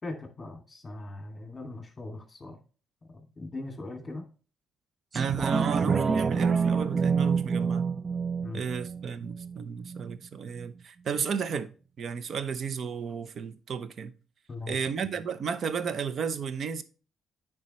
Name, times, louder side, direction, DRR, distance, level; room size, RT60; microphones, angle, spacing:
voice 1, 0.0-2.6 3.1-4.3 8.4-8.6 14.5-14.8, left 2 dB, 25° left, 2.4 m, -40 dB
sound 1, 5.1-10.2 10.6-10.7, right 5 dB, 40° right, 0.3 m, -27 dB
voice 2, 5.1-7.9 8.5-11.7 12.0-14.1 14.7-16.8, right 6 dB, 55° right, 0.8 m, -33 dB
9.4 x 4.9 x 3.1 m
cardioid pair, 90°, 0 cm